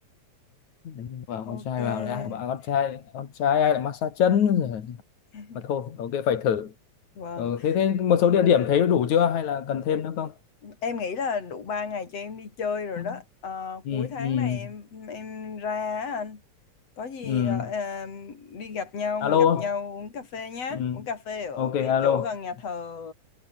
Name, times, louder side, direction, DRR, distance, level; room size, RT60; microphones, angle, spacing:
voice 1, 0.9-5.0 5.6-6.7 7.4-10.3 13.0-13.2 13.9-14.7 17.2-17.7 19.2-19.7 20.7-21.0 21.6-22.3, left 8 dB, 75° left, 3.6 m, -24 dB
voice 2, 1.5-2.4 5.3-5.6 7.2-7.7 10.6-16.4 17.0-23.1, left 5 dB, 55° left, 4.7 m, -33 dB
omnidirectional pair, 3.4 m